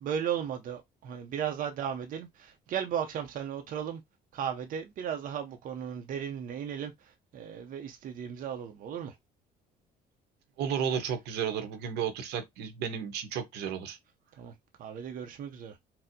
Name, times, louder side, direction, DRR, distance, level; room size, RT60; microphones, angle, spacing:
voice 1, 0.0-4.0 4.3-9.1 14.4-14.5 14.8-15.8, right 8 dB, 55° right, 0.5 m, -35 dB
voice 2, 10.6-14.0, right 8 dB, 85° right, 0.8 m, -33 dB
4.2 x 2.0 x 2.6 m
cardioid pair, 110°, 17 cm